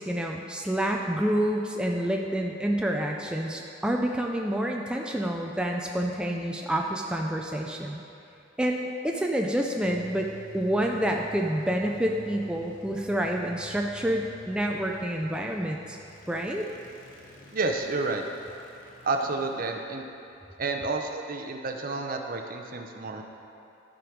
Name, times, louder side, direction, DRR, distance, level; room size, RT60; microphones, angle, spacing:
voice 1, 0.0-8.0 8.6-10.3 10.5-16.0 16.3-16.6, right 1 dB, 5° right, 0 dB, 0.4 m, -28 dB
sound 1, 9.8-20.9, left 2 dB, 45° left, 1.1 m, -50 dB
voice 2, 17.5-18.2 19.0-20.0 20.6-23.2, right 3 dB, 50° right, 4 dB, 0.7 m, -30 dB
12.5 x 5.1 x 4.6 m, 2.7 s
head